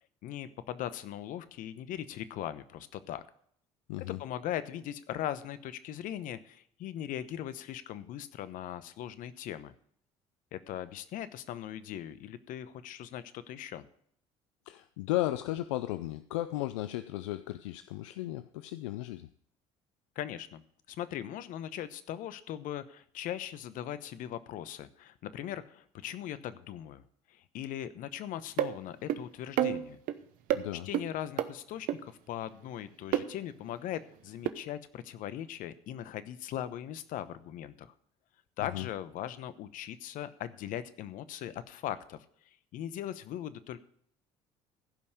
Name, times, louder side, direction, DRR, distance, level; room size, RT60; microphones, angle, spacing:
voice 1, 0.2-3.2 4.1-9.7 10.5-13.8 20.2-20.6 20.9-27.0 27.3-30.0 30.8-37.9 38.6-42.2 42.7-43.8, left 11 dB, 60° left, 13 dB, 1.0 m, -39 dB
voice 2, 3.9-4.2 14.7-19.3 30.5-30.9 38.7-38.9, left 16 dB, 80° left, 12 dB, 0.5 m, -35 dB
sound 1, 28.6-28.7 29.1-29.2 29.6-30.2 30.5-30.6 30.9-31.1 31.4-31.5 31.9-32.0 33.1-33.3 34.5-34.6, right 12 dB, 65° right, 0.9 m, -28 dB
15.5 x 5.5 x 6.6 m, 0.64 s
hypercardioid pair, 65°, 15 cm